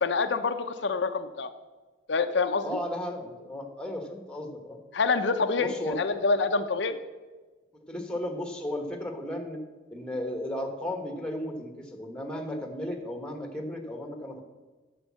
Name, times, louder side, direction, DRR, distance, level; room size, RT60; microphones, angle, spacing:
voice 1, 0.0-1.5 2.1-2.8 4.9-7.0, left 4 dB, 70° left, 8 dB, 0.6 m, -26 dB
voice 2, 2.6-4.8 5.6-6.0 7.9-9.6 9.9-14.4, left 1 dB, 5° left, 4 dB, 1.3 m, -34 dB
9.9 x 6.6 x 7.3 m, 1.3 s
head